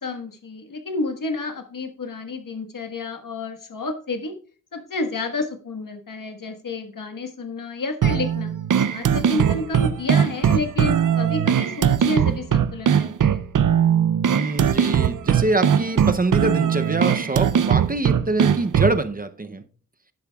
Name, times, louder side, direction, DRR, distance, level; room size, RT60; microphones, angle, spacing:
voice 1, 0.0-4.3 4.7-8.5 8.9-13.4, left 3 dB, 80° left, 1.5 m, -30 dB
sound 1, 8.0-19.0, right 8 dB, 75° right, 0.6 m, -20 dB
voice 2, 14.3-19.6, right 2 dB, 25° right, 0.6 m, -25 dB
11.5 x 10.5 x 2.3 m
wide cardioid pair, 100°, 32 cm